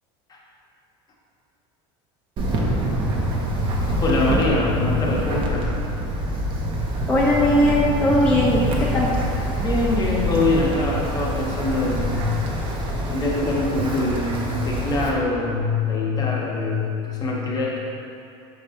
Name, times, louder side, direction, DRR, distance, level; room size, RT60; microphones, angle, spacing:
Wind, 2.4-15.1, right 1 dB, 40° right, 1.0 m, -25 dB
voice 1, 4.0-5.7 9.6-12.4 13.1-17.8, left 3 dB, 30° left, -3 dB, 1.2 m, -23 dB
voice 2, 7.1-9.1, left 1 dB, 10° left, -7 dB, 0.8 m, -19 dB
5.4 x 5.3 x 4.4 m, 2.5 s
supercardioid pair, 135°, 14 cm